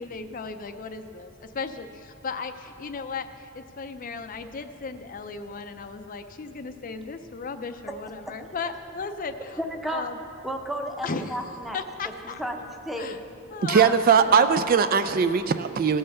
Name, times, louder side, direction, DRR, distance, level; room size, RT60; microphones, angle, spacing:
voice 1, 0.0-9.6 9.9-10.2 11.0-11.4 11.7-12.4 13.0-13.2 13.5-14.3, left 4 dB, 40° left, 8 dB, 0.5 m, -36 dB
voice 2, 9.6-10.0 10.4-11.8 12.2-13.2 13.7-13.9, equal, ahead, 3 dB, 0.7 m, -32 dB
voice 3, 13.7-16.0, right 6 dB, 45° right, 10 dB, 0.3 m, -20 dB
16.0 x 5.5 x 6.7 m, 3.0 s
head